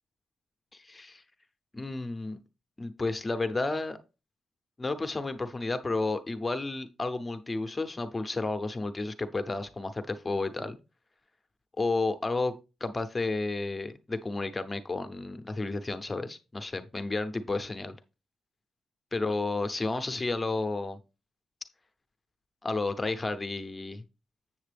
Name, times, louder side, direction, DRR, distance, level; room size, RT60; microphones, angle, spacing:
voice 1, 0.7-1.2 1.7-2.4 2.8-4.0 4.8-10.8 11.8-12.5 12.8-18.0 19.1-21.0 22.6-24.0, left 3 dB, 20° left, 0.6 m, -32 dB
7.5 x 7.1 x 3.4 m
cardioid pair, 140°, 0 cm